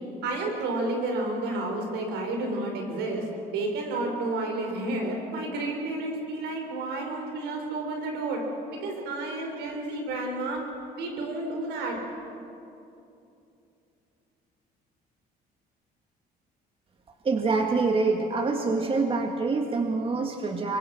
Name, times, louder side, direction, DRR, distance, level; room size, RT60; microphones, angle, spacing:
voice 1, 0.2-3.3 3.5-8.4 8.8-10.6 11.0-12.0, right 2 dB, 85° right, 2 dB, 5.7 m, -31 dB
voice 2, 17.2-20.8, right 3 dB, 35° right, 3 dB, 1.9 m, -26 dB
26.0 x 23.5 x 6.2 m, 2.7 s
cardioid pair, 110°, 17 cm